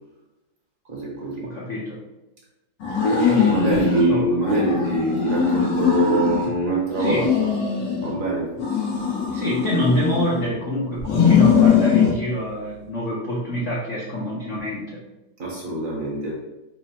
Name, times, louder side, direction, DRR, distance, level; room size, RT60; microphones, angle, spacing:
voice 1, 0.9-1.5 3.3-7.5 8.0-8.5 15.4-16.4, right 2 dB, 55° right, -3 dB, 1.1 m, -24 dB
voice 2, 1.4-2.0 3.1-3.8 4.1-4.4 7.0-7.3 9.3-15.0, equal, 65° left, -5 dB, 0.7 m, -26 dB
sound 1, 2.8-4.1 4.4-6.5 6.9-8.2 8.6-10.5 11.0-12.2, left 7 dB, 85° left, 1.7 m, -21 dB
4.4 x 2.0 x 4.0 m, 1.0 s
omnidirectional pair, 2.1 m